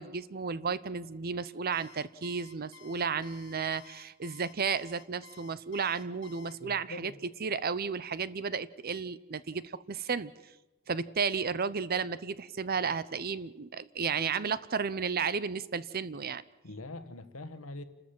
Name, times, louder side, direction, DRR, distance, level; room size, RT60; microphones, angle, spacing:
voice 1, 0.0-7.1 7.4-10.3 10.9-16.4, right 5 dB, 45° right, 17 dB, 0.7 m, -33 dB
Alarm, 1.7-6.6, left 7 dB, 60° left, 2.4 m, -54 dB
voice 2, 6.6-7.2 16.6-17.8, left 2 dB, 85° left, 10 dB, 1.4 m, -43 dB
28.5 x 13.5 x 7.6 m, 1.1 s
head